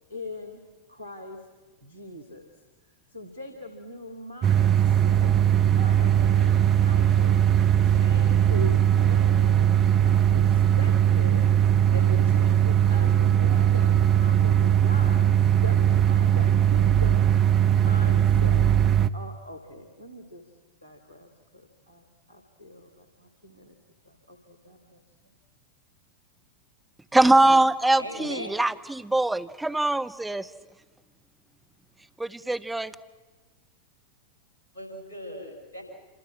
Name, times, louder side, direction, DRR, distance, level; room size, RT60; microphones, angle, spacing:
voice 1, 0.1-0.6 0.9-1.4 1.8-2.5 3.1-5.3 5.7-7.4 7.8-9.7 10.0-11.5 11.9-15.2 15.6-18.6 19.1-20.5 20.8-23.8 24.1-25.0, left 1 dB, 85° right, 5 dB, 2.7 m, -41 dB
sound 1, 4.4-19.1, right 10 dB, 30° right, 0.9 m, -20 dB
voice 2, 27.1-30.5 32.2-32.9, right 2 dB, 5° right, 8 dB, 1.0 m, -22 dB
voice 3, 28.0-28.5 34.7-35.8, left 1 dB, 75° left, 2 dB, 7.5 m, -38 dB
28.0 x 27.0 x 6.2 m, 1.3 s
figure-of-eight pair, 90°, 0 cm